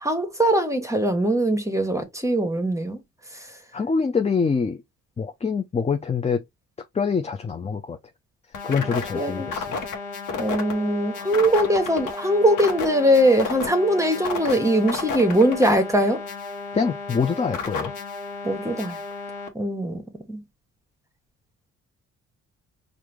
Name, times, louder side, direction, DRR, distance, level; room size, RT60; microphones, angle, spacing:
voice 1, 0.0-3.0 9.1-9.5 10.4-16.2 18.4-19.0 19.5-20.0 20.3-20.4, right 1 dB, 10° right, 1.2 m, -21 dB
voice 2, 3.7-4.8 5.2-6.4 6.9-8.0 8.6-9.6 16.7-17.9, left 5 dB, 20° left, 0.5 m, -25 dB
sound 1, 8.5-19.5, left 4 dB, 80° left, 1.2 m, -32 dB
4.7 x 2.6 x 3.4 m
cardioid pair, 90°, 30 cm